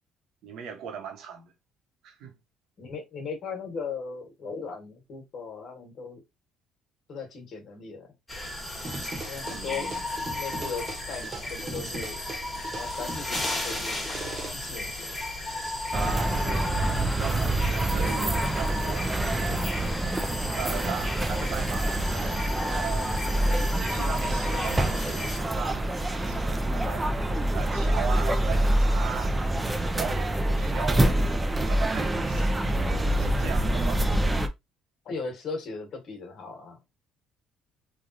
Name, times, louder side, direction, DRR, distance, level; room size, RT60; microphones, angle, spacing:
voice 1, 0.4-1.5 2.0-2.4 9.4-10.0 15.9-16.7 17.2-19.6 20.5-22.4 22.7-23.1 23.8-27.1 27.5-29.4 29.9-31.3 31.7-32.6 33.2-34.1, right 7 dB, 75° right, 1.0 m, -38 dB
voice 2, 2.8-6.2 7.1-8.1 9.3-9.9 10.3-12.2 12.7-14.1 14.5-15.2 31.0-31.1 35.0-36.8, left 5 dB, 55° left, 1.3 m, -37 dB
sound 1, 8.3-25.4, left 2 dB, 15° left, 1.4 m, -34 dB
sound 2, 8.8-14.5, right 2 dB, 35° right, 1.0 m, -39 dB
sound 3, 15.9-34.5, right 1 dB, 15° right, 0.5 m, -26 dB
3.2 x 2.3 x 2.6 m
cardioid pair, 90°, 0 cm